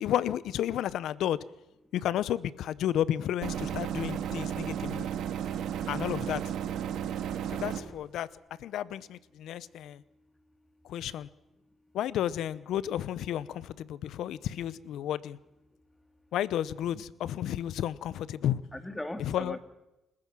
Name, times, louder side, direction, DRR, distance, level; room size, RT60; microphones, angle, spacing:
voice 1, 0.0-1.4 1.9-5.1 5.9-6.4 7.5-8.3 8.6-10.0 10.8-11.3 11.9-15.4 16.3-18.6 19.2-19.6, left 11 dB, 80° left, 0.7 m, -32 dB
sound 1, 3.4-7.8, right 9 dB, 80° right, 2.0 m, -33 dB
voice 2, 18.7-19.6, left 1 dB, 10° left, 2.2 m, -40 dB
28.0 x 15.0 x 6.2 m
cardioid pair, 90°, 0 cm